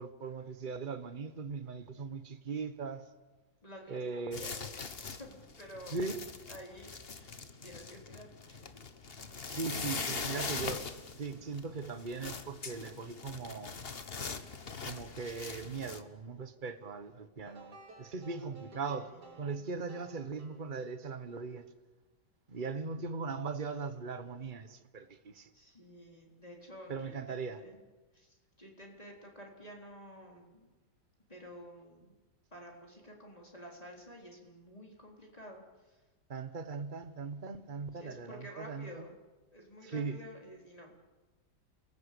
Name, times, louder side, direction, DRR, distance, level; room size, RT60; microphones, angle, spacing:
voice 1, 0.0-3.1 3.9-4.4 5.9-6.2 9.5-10.9 11.2-13.8 14.8-19.1 19.4-21.7 22.5-25.5 26.9-27.6 36.3-39.0 39.8-40.2, right 4 dB, 30° right, 1.4 m, -39 dB
voice 2, 3.6-4.8 5.2-6.0 6.5-8.6 18.6-19.7 25.5-27.8 28.1-30.7 31.3-32.1 32.5-36.0 37.9-39.1 39.5-40.9, equal, 20° left, 4.2 m, -51 dB
sound 1, 4.3-16.0, left 5 dB, 40° left, 1.5 m, -42 dB
sound 2, 17.4-21.3, right 4 dB, 70° right, 3.8 m, -55 dB
29.0 x 20.5 x 8.5 m
omnidirectional pair, 1.8 m